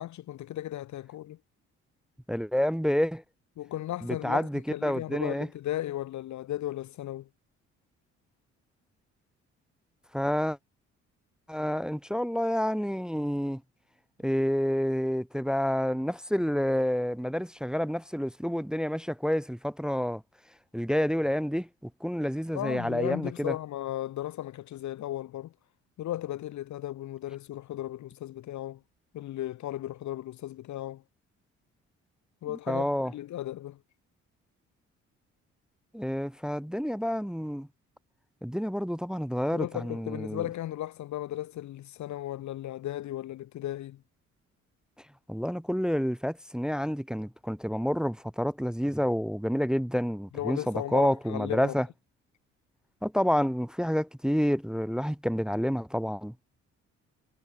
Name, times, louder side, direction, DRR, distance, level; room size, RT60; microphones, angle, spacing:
voice 1, 0.0-1.4 3.6-7.3 22.5-25.5 26.0-28.8 29.1-31.0 32.4-32.9 33.1-33.8 39.5-44.0 50.3-51.7, left 13 dB, 55° left, 0.7 m, -35 dB
voice 2, 2.3-3.2 4.0-5.5 10.1-10.6 11.5-13.6 14.2-20.2 20.7-21.7 22.0-23.5 32.5-33.1 35.9-37.7 38.4-40.4 45.3-51.9 53.0-56.3, equal, ahead, 0.8 m, -29 dB
hypercardioid pair, 45°, 35 cm